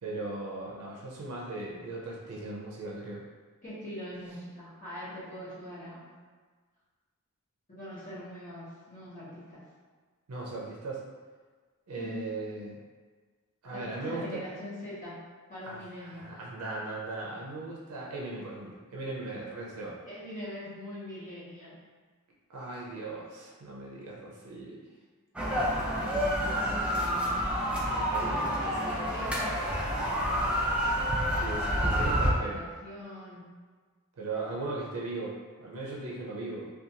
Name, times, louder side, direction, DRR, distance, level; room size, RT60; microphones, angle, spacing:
voice 1, 0.0-3.2 10.3-11.0 11.9-12.8 13.6-14.4 15.6-20.0 22.5-24.8 27.8-28.9 31.3-32.6 34.2-36.7, right 2 dB, 75° right, -4 dB, 0.5 m, -38 dB
voice 2, 3.6-6.0 7.7-9.6 12.0-12.2 13.7-15.1 15.5-16.3 20.1-21.7 26.0-27.4 28.1-29.5 31.3-33.4, left 1 dB, 35° left, -11 dB, 0.9 m, -42 dB
sound 1, 25.4-32.3, equal, 5° right, 0.4 m, -28 dB
2.5 x 2.3 x 2.8 m, 1.5 s
head